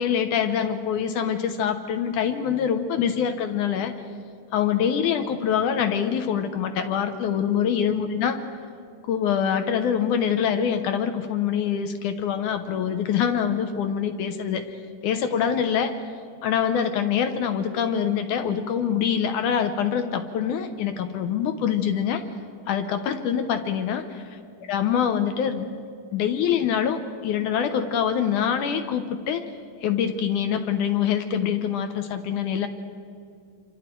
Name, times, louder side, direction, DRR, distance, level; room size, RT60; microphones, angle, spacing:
voice 1, 0.0-3.9 4.5-8.4 9.1-14.7 15.0-15.9 16.4-22.2 22.7-24.2 24.7-25.8 26.1-29.4 29.8-32.7, left 8 dB, 70° left, 8 dB, 2.0 m, -25 dB
27.5 x 25.0 x 4.6 m, 2.4 s
omnidirectional pair, 4.5 m